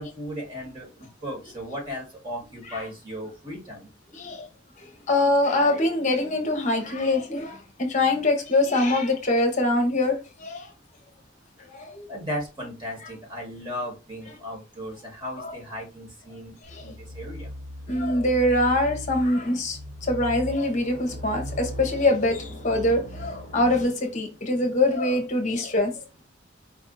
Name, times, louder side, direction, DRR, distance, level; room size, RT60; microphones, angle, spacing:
voice 1, 0.0-3.9 12.1-17.5, equal, 25° right, 2.0 m, -36 dB
voice 2, 4.1-4.5 4.8-10.7 11.7-12.0 15.4-15.5 16.7-16.8 17.9-25.9, left 2 dB, 40° left, 0.9 m, -24 dB
sound 1, 16.6-23.9, equal, 70° right, 1.7 m, -38 dB
4.7 x 2.5 x 4.0 m
head